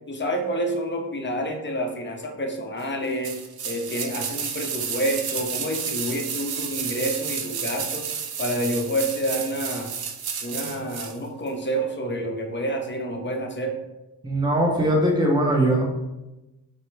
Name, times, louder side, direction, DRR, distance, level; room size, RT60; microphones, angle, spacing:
voice 1, 0.1-3.4 3.6-8.1 8.4-9.9 10.4-13.8, right 1 dB, 25° left, 2 dB, 0.8 m, -28 dB
sound 1, 3.2-11.2 11.5-11.6, right 7 dB, 55° right, 0.7 m, -31 dB
voice 2, 14.2-15.8, right 1 dB, 10° right, -1 dB, 0.9 m, -20 dB
5.8 x 2.2 x 3.2 m, 1.0 s
cardioid pair, 65°, 43 cm